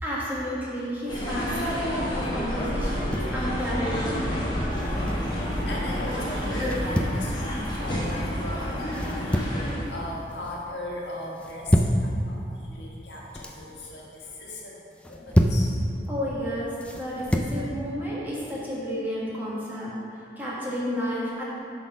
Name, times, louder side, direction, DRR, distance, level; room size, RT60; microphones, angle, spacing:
voice 1, 0.0-4.3 16.1-19.9 20.4-21.4, equal, 10° right, -8 dB, 1.5 m, -31 dB
sound 1, 1.1-9.8, equal, 25° left, 1.2 m, -29 dB
sound 2, 2.8-3.4 4.7-5.3 6.6-7.2 8.9-9.7 10.0-10.5 11.4-12.0 13.1-13.6 14.9-15.7 16.8-17.6, equal, 5° left, 0.4 m, -26 dB
voice 2, 4.9-15.8, left 1 dB, 75° left, -4 dB, 1.5 m, -38 dB
8.6 x 4.2 x 5.9 m, 2.6 s
head